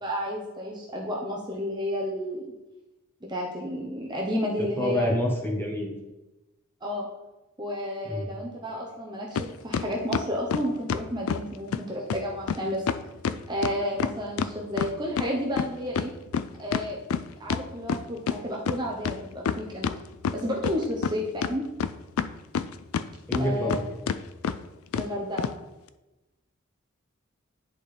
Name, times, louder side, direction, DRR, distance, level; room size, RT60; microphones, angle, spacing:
voice 1, 0.0-2.4 3.3-5.1 6.8-7.1 7.6-12.8 13.5-16.1 16.6-17.0 17.4-19.9 20.3-21.6 23.4-23.8 24.9-25.5, equal, 20° right, -2 dB, 0.8 m, -31 dB
voice 2, 4.6-5.9 8.1-8.3 23.3-23.8, left 1 dB, 10° left, -2 dB, 1.3 m, -27 dB
sound 1, 9.4-9.5 9.7-11.4 11.7-11.8 12.1-12.2 12.5-12.6 12.9-15.3 15.6-18.4 18.7-18.8 19.0-20.0 20.2-21.1 21.4-23.0 23.3-23.8 24.1-24.2 24.4-24.6 24.9-25.1 25.4-25.5, left 6 dB, 80° left, 0.4 m, -27 dB
10.5 x 4.3 x 3.4 m, 1.0 s
head